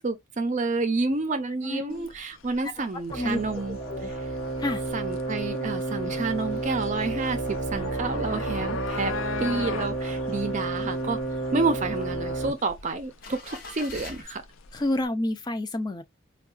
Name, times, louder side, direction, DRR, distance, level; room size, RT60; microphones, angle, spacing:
voice 1, 0.0-4.2 4.9-9.1 9.4-11.2 11.5-14.4, right 3 dB, 35° right, 0.5 m, -29 dB
voice 2, 1.6-2.1 2.8-3.4 3.8-4.1 4.6-4.8 11.5-11.6 14.7-16.0, left 1 dB, 20° left, 0.4 m, -29 dB
sound 1, 1.9-15.1, left 5 dB, 80° left, 0.5 m, -40 dB
sound 2, 3.1-12.5, right 2 dB, 60° left, 1.1 m, -31 dB
sound 3, 3.8-4.4 4.9-5.0 5.1-8.6 8.9-9.9 10.3-14.2, left 3 dB, 45° left, 0.9 m, -47 dB
4.6 x 2.3 x 2.3 m
head